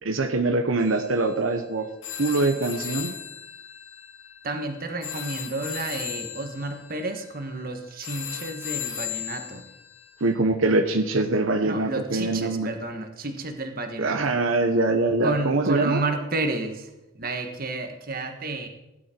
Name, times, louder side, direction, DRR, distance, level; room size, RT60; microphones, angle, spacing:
voice 1, 0.0-1.9 2.2-3.1 10.2-12.7 14.0-16.0, right 2 dB, 75° right, 6 dB, 1.0 m, -23 dB
sound 1, 0.8-10.3, left 10 dB, 75° left, 1.9 m, -37 dB
voice 2, 4.4-9.7 11.6-14.4 15.2-18.7, right 2 dB, 45° right, 6 dB, 1.5 m, -31 dB
16.5 x 11.5 x 4.5 m, 0.97 s
head